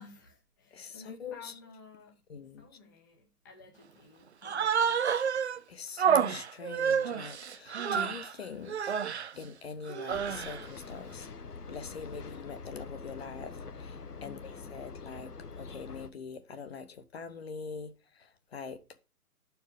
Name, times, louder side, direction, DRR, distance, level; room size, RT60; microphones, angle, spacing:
voice 1, 0.0-2.2 2.6-5.0 14.2-14.7, left 4 dB, 15° left, 0.7 m, -54 dB
voice 2, 0.7-1.5 2.3-2.7 5.7-8.9 9.4-11.3 11.7-15.3 15.6-19.0, left 5 dB, 40° left, 1.0 m, -43 dB
Human voice, 4.4-5.6 6.0-8.3 8.7-9.3 9.9-10.6, right 7 dB, 50° right, 0.5 m, -29 dB
sound 1, 10.1-16.1, left 4 dB, 85° left, 1.0 m, -45 dB
12.5 x 4.6 x 5.1 m
figure-of-eight pair, 140°, 45 cm